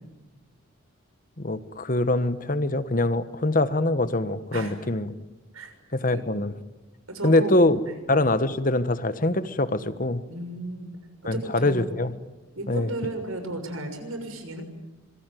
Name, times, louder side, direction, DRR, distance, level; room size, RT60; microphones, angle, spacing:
voice 1, 1.4-5.1 5.9-6.5 7.2-7.8 8.1-10.2 11.2-12.2 12.7-12.9, left 2 dB, 40° left, 12 dB, 1.3 m, -24 dB
voice 2, 7.1-7.6 7.9-8.0 10.3-10.9 11.3-11.9 12.6-14.6, right 1 dB, 85° right, 6 dB, 6.6 m, -34 dB
26.5 x 23.5 x 9.3 m, 1.1 s
head